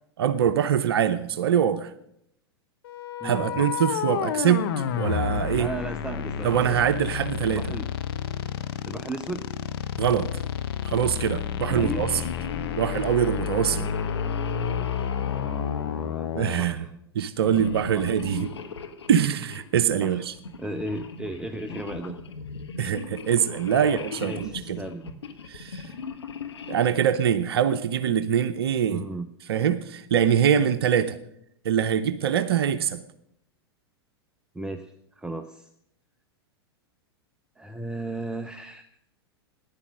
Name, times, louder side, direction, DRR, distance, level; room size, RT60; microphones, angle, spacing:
voice 1, 0.2-1.9 3.2-4.6 5.0-5.7 6.4-7.6 10.0-10.3 10.8-12.1 12.8-13.9 16.3-16.9 17.1-18.5 19.1-20.3 22.8-24.8 25.5-25.9 26.7-29.1 29.5-31.2 31.6-33.0, right 9 dB, 65° right, 0.8 m, -23 dB
sound 1, 2.8-16.7, left 8 dB, 65° left, 1.1 m, -30 dB
voice 2, 3.2-3.7 5.5-6.8 7.5-7.9 8.9-9.5 11.7-12.0 13.7-13.9 15.3-16.3 16.6-16.9 17.5-17.7 17.9-18.1 18.5-18.6 20.0-20.2 20.6-22.2 23.7-25.1 28.9-29.3 34.5-35.7 37.6-38.8, right 2 dB, 5° right, 0.7 m, -36 dB
sound 2, 11.7-16.5 17.4-19.7 20.3-27.1, left 5 dB, 80° left, 1.3 m, -38 dB
14.5 x 10.5 x 6.3 m
hypercardioid pair, 95°, 14 cm